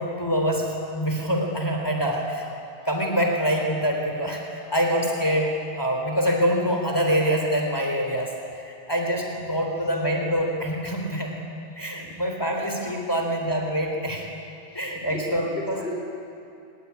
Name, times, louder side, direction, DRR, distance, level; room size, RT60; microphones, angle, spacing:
voice 1, 0.0-2.5 2.8-11.4 11.8-14.2 14.7-15.9, equal, 20° left, 1 dB, 3.6 m, -25 dB
voice 2, 15.0-15.9, left 2 dB, 55° left, -4 dB, 4.7 m, -34 dB
26.0 x 20.5 x 9.8 m, 2.6 s
omnidirectional pair, 1.1 m